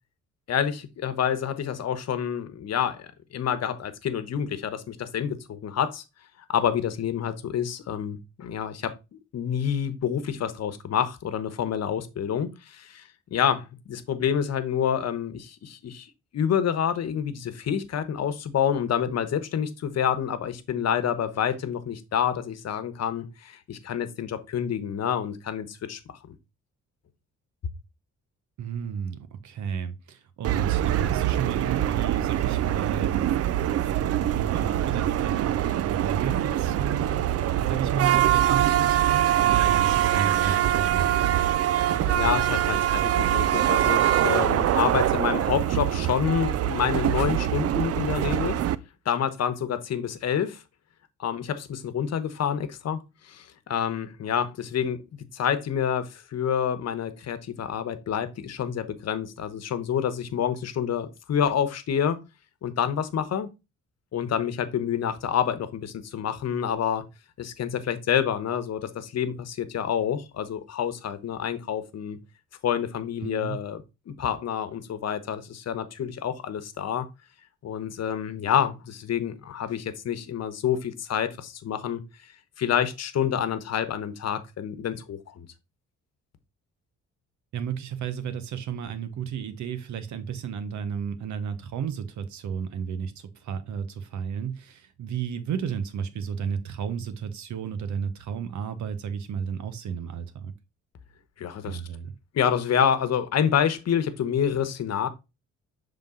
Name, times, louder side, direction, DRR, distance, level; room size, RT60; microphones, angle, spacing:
voice 1, 0.5-6.0 6.5-8.9 9.3-13.0 13.3-16.1 16.3-26.0 42.0-48.6 49.0-50.6 51.2-55.0 55.3-62.2 62.6-63.5 64.1-67.0 67.4-72.2 72.6-73.8 74.1-77.1 77.6-82.0 82.6-85.5 101.4-101.8 102.3-105.1, left 8 dB, 60° left, 1.1 m, -28 dB
voice 2, 28.6-33.6 33.8-41.4 73.2-73.6 87.5-100.5 101.6-102.1, right 7 dB, 70° right, 1.1 m, -33 dB
sound 1, 30.4-48.7, right 12 dB, 55° right, 0.5 m, -24 dB
6.9 x 3.7 x 3.7 m
cardioid pair, 90°, 30 cm